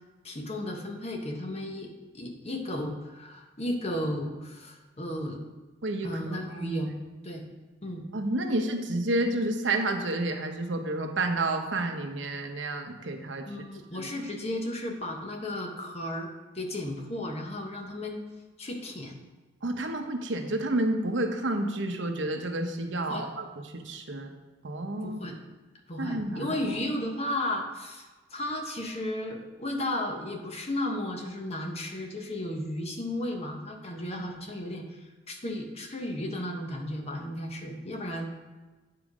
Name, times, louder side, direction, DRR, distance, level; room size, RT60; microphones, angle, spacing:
voice 1, 0.2-5.4 6.0-7.0 7.2-7.5 7.8-8.1 13.5-16.3 16.5-18.2 18.6-19.2 23.1-23.3 25.0-25.4 25.9-38.3, left 1 dB, 35° left, 2 dB, 1.0 m, -34 dB
voice 2, 5.8-6.9 8.1-13.5 13.9-14.1 19.6-23.4 23.7-24.3 24.6-25.2 26.0-26.5 34.2-34.3, right 2 dB, 80° right, 4 dB, 0.9 m, -30 dB
9.0 x 4.8 x 5.0 m, 1.2 s
head